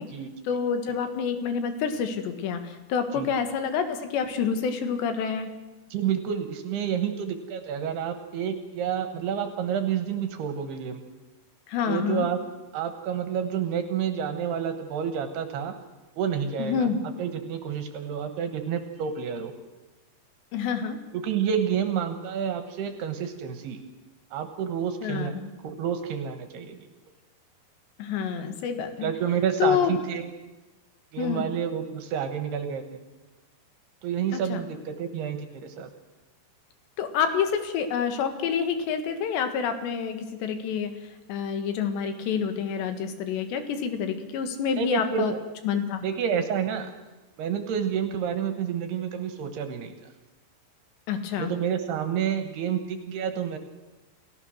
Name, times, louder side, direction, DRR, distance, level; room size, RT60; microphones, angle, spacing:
voice 1, 0.5-5.5 11.7-12.3 16.6-17.0 20.5-21.0 25.0-25.5 28.0-29.1 29.6-29.9 31.2-31.5 34.3-34.6 37.0-40.9 41.3-45.3 45.7-46.0 51.1-51.5, left 7 dB, 85° left, 7 dB, 3.9 m, -28 dB
voice 2, 5.9-11.0 11.9-12.4 12.7-15.7 16.2-16.9 17.2-19.5 21.2-23.8 24.3-25.3 25.6-26.9 29.0-30.3 31.1-33.0 34.0-35.9 44.8-45.4 46.0-46.9 47.4-49.9 51.4-53.6, right 8 dB, 75° right, 8 dB, 3.2 m, -29 dB
29.5 x 15.0 x 6.4 m, 1.1 s
omnidirectional pair, 4.8 m